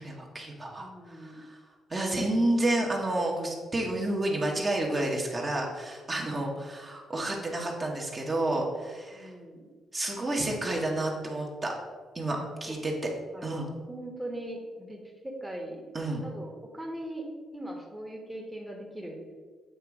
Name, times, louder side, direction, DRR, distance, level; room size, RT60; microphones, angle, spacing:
voice 1, 0.0-1.6 1.9-9.3 9.9-11.7 12.1-13.1 13.4-13.7 15.9-16.2, right 1 dB, 30° right, -1 dB, 1.1 m, -30 dB
voice 2, 0.8-1.5 9.1-9.7 12.6-12.7 13.3-15.9 16.2-17.3 17.5-19.2, right 1 dB, 5° right, -1 dB, 1.1 m, -40 dB
7.9 x 3.0 x 4.7 m, 1.5 s
cardioid pair, 90°, 0 cm